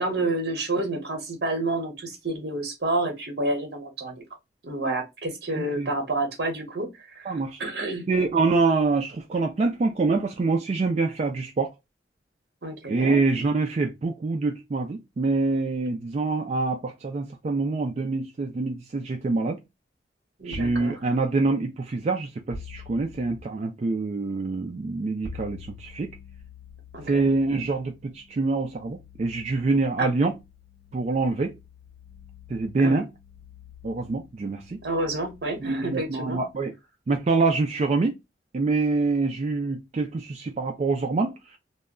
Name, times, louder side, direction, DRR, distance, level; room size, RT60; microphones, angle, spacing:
voice 1, 0.0-4.2 4.6-8.1 12.6-13.2 20.4-21.0 26.9-27.3 30.0-30.1 32.8-33.0 34.8-36.4, right 2 dB, 65° right, 0.8 m, -29 dB
voice 2, 5.5-5.9 7.3-7.6 8.1-11.7 12.9-19.6 20.5-26.1 27.0-30.3 30.9-31.5 32.5-33.1 33.8-34.8 35.6-36.7 37.1-38.1 38.5-41.6, right 3 dB, 40° right, 0.3 m, -25 dB
sound 1, 20.5-21.0 22.5-23.5 25.2-36.6, left 4 dB, 25° left, 0.6 m, -46 dB
2.2 x 2.1 x 3.5 m
head